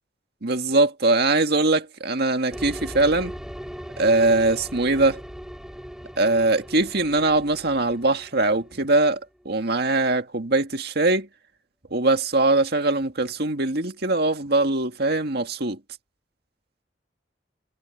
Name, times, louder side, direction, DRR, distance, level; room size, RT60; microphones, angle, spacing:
voice 1, 0.4-3.3 4.0-5.2 6.2-9.2 9.5-11.3 11.9-15.8, right 2 dB, 65° right, 2.0 m, -21 dB
sound 1, 2.5-9.6, equal, 5° right, 4.7 m, -39 dB
head